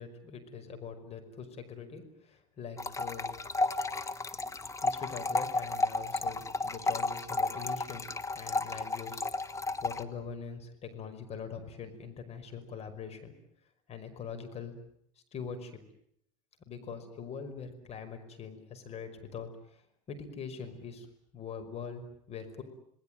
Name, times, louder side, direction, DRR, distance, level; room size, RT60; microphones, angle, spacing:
voice 1, 0.0-3.4 4.8-9.3 9.8-13.4 13.9-14.8 15.3-15.8 16.7-21.1 21.3-22.6, left 6 dB, 40° left, 8 dB, 5.5 m, -43 dB
sound 1, 2.8-10.0, left 3 dB, 20° left, 1.8 m, -33 dB
28.5 x 19.5 x 9.2 m, 0.69 s
hypercardioid pair, 90°, 16 cm